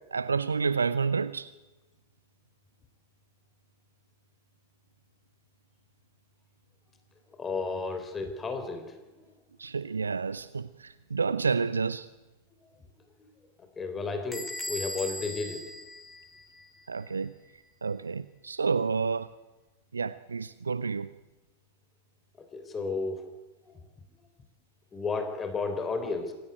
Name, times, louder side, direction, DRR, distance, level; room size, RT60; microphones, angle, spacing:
voice 1, 0.1-1.5 9.6-12.1 16.9-17.3 17.8-19.3 19.9-21.1, right 5 dB, 75° right, 0.7 m, -29 dB
voice 2, 7.4-8.9 13.2-13.3 13.8-15.7 22.5-23.3 23.7-23.8 24.9-26.3, left 4 dB, 20° left, 3.6 m, -33 dB
Bell / Door, 14.3-16.8, left 1 dB, ahead, 2.8 m, -39 dB
25.5 x 17.0 x 9.2 m
figure-of-eight pair, 90°, 0 cm